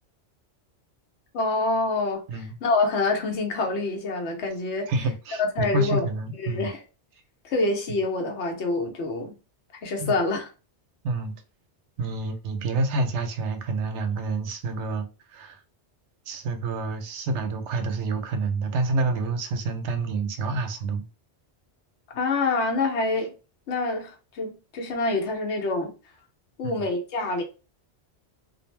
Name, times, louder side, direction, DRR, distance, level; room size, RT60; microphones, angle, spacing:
voice 1, 1.3-4.9 5.4-6.0 6.4-6.8 7.4-9.3 9.8-10.5 22.1-23.3 23.7-25.9 26.6-27.4, left 3 dB, 85° left, 1.0 m, -26 dB
voice 2, 4.9-6.7 10.0-10.1 11.0-11.3 12.0-15.6 16.3-21.0 26.6-26.9, right 3 dB, 85° right, 0.9 m, -28 dB
2.5 x 2.0 x 3.1 m
omnidirectional pair, 1.1 m